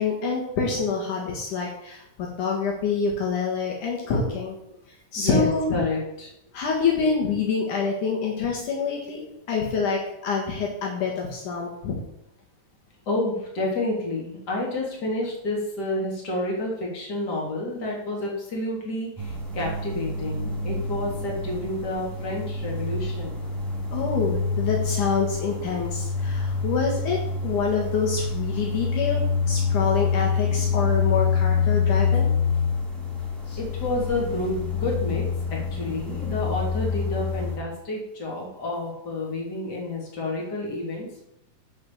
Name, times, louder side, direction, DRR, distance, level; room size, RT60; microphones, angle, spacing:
voice 1, 0.0-4.6 5.1-5.8 6.5-9.2 9.5-12.0 23.9-32.3 33.5-33.6, left 5 dB, 65° left, -1 dB, 3.1 m, -26 dB
voice 2, 5.2-6.3 13.1-23.4 33.6-35.2 35.5-41.2, left 2 dB, 30° left, -2 dB, 3.3 m, -29 dB
in the woods with a plane high in the sky, 19.2-37.6, left 5 dB, 5° right, 2.9 m, -26 dB
11.5 x 5.4 x 7.3 m, 0.81 s
omnidirectional pair, 3.9 m